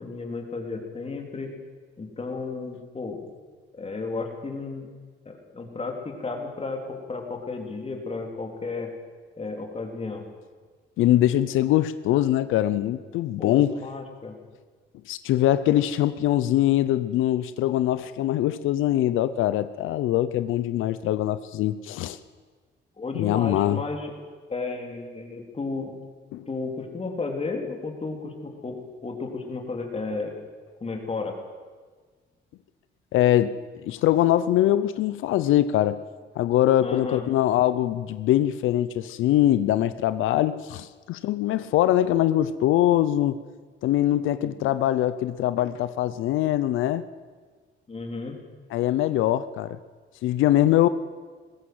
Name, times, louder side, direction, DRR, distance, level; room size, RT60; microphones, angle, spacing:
voice 1, 0.0-1.5 2.0-3.3 3.7-4.9 5.3-8.9 9.4-10.2 13.4-14.4 23.0-24.1 24.5-25.9 26.5-30.3 30.8-31.3 36.8-37.2 44.4-44.5 47.9-48.4, left 3 dB, 30° left, 3 dB, 3.6 m, -33 dB
voice 2, 11.0-13.7 15.1-22.2 23.1-23.8 26.3-26.4 33.1-33.6 33.8-36.0 36.4-43.4 43.8-47.1 48.7-49.8 50.2-50.9, left 13 dB, 90° left, 14 dB, 0.7 m, -22 dB
20.0 x 16.0 x 7.9 m, 1.5 s
cardioid pair, 90°, 20 cm